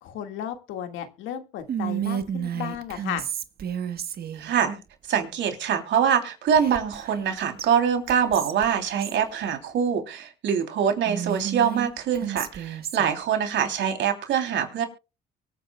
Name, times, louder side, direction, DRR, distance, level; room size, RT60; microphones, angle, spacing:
voice 1, 0.0-3.2, left 10 dB, 80° left, 7 dB, 1.9 m, -34 dB
Whispering, 1.7-4.5 6.6-7.3 7.6-7.7 8.1-9.2 11.0-13.2, right 9 dB, 50° right, 1.3 m, -32 dB
voice 2, 4.3-4.8 5.1-14.8, right 8 dB, 70° right, 5 dB, 3.1 m, -24 dB
24.0 x 9.4 x 2.3 m, 0.30 s
cardioid pair, 90°, 20 cm